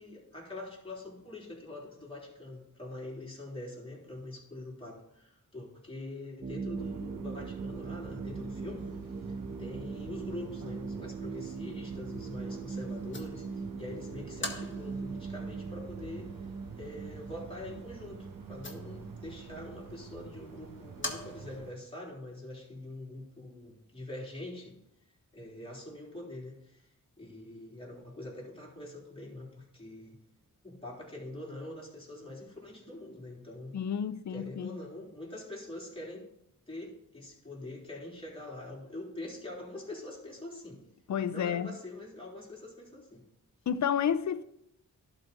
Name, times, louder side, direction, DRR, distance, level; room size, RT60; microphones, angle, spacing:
voice 1, 0.0-9.0 9.3-16.4 16.8-24.8 25.3-26.9 27.2-30.2 30.6-33.8 34.3-36.3 36.7-40.8 41.3-43.2, left 1 dB, 15° left, 3.7 m, -44 dB
sound 1, 6.4-20.8, right 4 dB, 30° right, 0.6 m, -41 dB
sound 2, 6.7-21.7, right 6 dB, 85° right, 0.9 m, -49 dB
sound 3, 8.8-21.8, left 2 dB, 35° left, 1.6 m, -48 dB
voice 2, 33.7-34.7 41.1-41.7 43.7-44.4, left 8 dB, 60° left, 0.6 m, -30 dB
11.5 x 4.1 x 5.4 m
cardioid pair, 60°, 33 cm